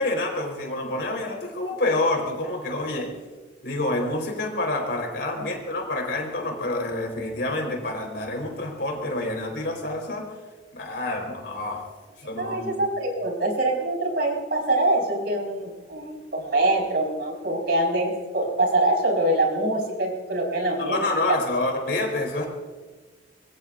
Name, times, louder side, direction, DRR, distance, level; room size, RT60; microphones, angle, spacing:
voice 1, 0.0-3.1 3.6-10.3 10.7-11.9 12.2-12.8 20.8-22.5, left 2 dB, 65° left, 2 dB, 4.2 m, -28 dB
voice 2, 12.4-21.4, right 2 dB, 60° right, 0 dB, 4.8 m, -24 dB
25.0 x 21.5 x 2.6 m, 1.3 s
head